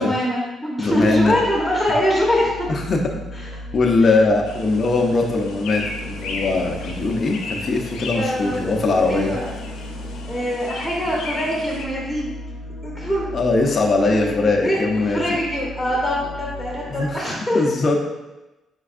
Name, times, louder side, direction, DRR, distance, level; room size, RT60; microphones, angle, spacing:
voice 1, 0.0-2.7 4.0-4.1 8.1-8.6 9.0-9.5 10.3-12.3 12.8-13.3 14.1-14.8 15.1-17.6, equal, 5° right, -5 dB, 1.0 m, -23 dB
voice 2, 0.8-1.4 2.7-3.0 3.3-3.4 3.7-9.3 13.3-15.4 16.9-17.3 17.5-18.1, left 3 dB, 40° left, 0 dB, 0.5 m, -20 dB
sound 1, 0.8-17.1, left 1 dB, 90° right, 1.4 m, -37 dB
sound 2, 4.4-11.9, left 3 dB, 90° left, 0.6 m, -34 dB
4.4 x 4.2 x 2.4 m, 1.0 s
cardioid pair, 90°, 0 cm